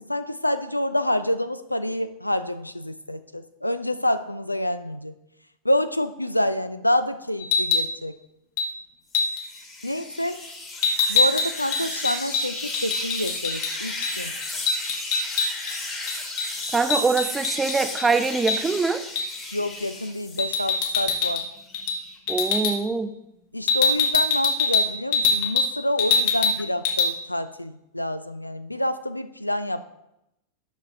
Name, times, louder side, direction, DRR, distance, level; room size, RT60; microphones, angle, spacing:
voice 1, 0.0-5.2 5.6-8.2 9.8-10.4 11.1-14.3 19.5-21.5 23.5-29.9, left 1 dB, 85° left, 12 dB, 0.3 m, -27 dB
sound 1, 7.4-7.9 8.6-8.7 9.1-9.4 10.8-13.7 14.0-14.1 14.4-15.7 16.1-18.1 18.5-18.6 19.2-19.4 20.4-21.5 21.7-22.0 22.3-22.8 23.7-25.7 26.0-26.6 26.9-27.1, left 4 dB, 50° left, 0.9 m, -23 dB
sound 2, 9.1-20.8 21.2-22.2, left 2 dB, 20° left, 1.4 m, -35 dB
voice 2, 16.7-19.0 22.3-23.1, right 4 dB, 15° right, 11 dB, 0.4 m, -23 dB
8.1 x 6.0 x 2.6 m, 0.88 s
figure-of-eight pair, 90°, 0 cm